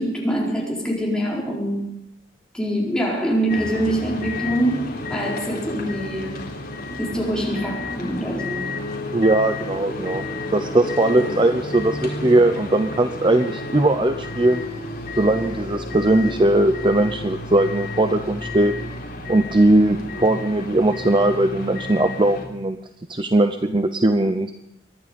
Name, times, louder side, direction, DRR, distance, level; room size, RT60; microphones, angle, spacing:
voice 1, 0.0-1.9 2.5-6.4 7.0-8.7 11.2-11.3, right 1 dB, 5° left, -4 dB, 4.6 m, -24 dB
sound 1, 3.5-22.4, left 2 dB, 55° left, 3.7 m, -31 dB
voice 2, 9.1-10.2 10.5-14.6 15.2-18.7 19.3-22.8 23.1-24.5, right 1 dB, 25° right, 7 dB, 0.7 m, -19 dB
24.0 x 11.0 x 5.3 m, 0.81 s
head